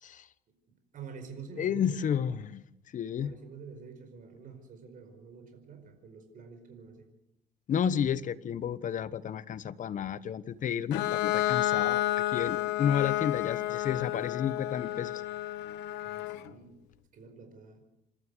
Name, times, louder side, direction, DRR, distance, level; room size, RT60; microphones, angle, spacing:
voice 1, 0.9-2.3 3.2-7.1 16.0-16.8 17.1-17.8, right 5 dB, 55° right, 5 dB, 4.9 m, -48 dB
voice 2, 1.6-2.6 2.9-3.3 7.7-15.1, left 8 dB, 50° left, 15 dB, 1.1 m, -31 dB
Bowed string instrument, 10.9-16.5, left 15 dB, 90° left, 1.2 m, -31 dB
27.5 x 13.0 x 8.0 m, 0.84 s
cardioid pair, 110°, 17 cm